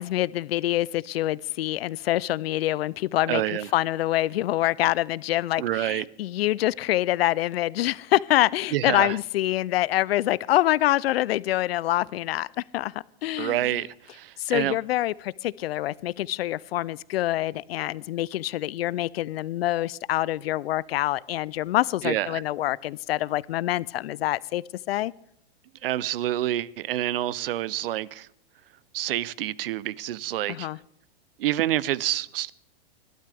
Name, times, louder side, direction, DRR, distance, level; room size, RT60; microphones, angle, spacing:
voice 1, 0.0-3.4 3.7-12.9 13.2-13.8 14.4-25.1 30.5-30.8, left 15 dB, 75° left, 0.5 m, -26 dB
voice 2, 3.3-3.7 5.6-6.0 8.7-9.2 13.4-14.8 22.0-22.4 25.8-28.3 28.9-30.7 31.4-32.5, right 13 dB, 65° right, 0.6 m, -27 dB
21.5 x 12.0 x 3.4 m
hypercardioid pair, 150°, 30 cm